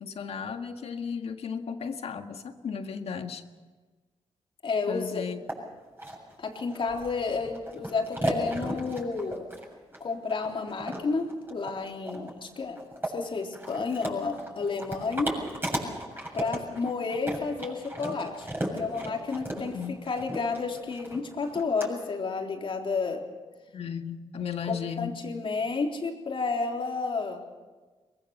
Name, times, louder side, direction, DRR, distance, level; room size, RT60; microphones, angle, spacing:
voice 1, 0.0-3.4 4.9-5.4 19.6-20.0 23.7-25.1, left 6 dB, 70° left, 6 dB, 1.7 m, -35 dB
voice 2, 4.6-5.2 6.4-9.5 10.0-15.4 16.3-18.5 18.7-23.2 24.7-27.4, left 4 dB, 55° left, 2 dB, 3.6 m, -31 dB
sound 1, 5.5-5.6 6.0-21.9, right 1 dB, 20° right, 7.4 m, -35 dB
23.5 x 20.5 x 7.1 m, 1.3 s
cardioid pair, 80°, 11 cm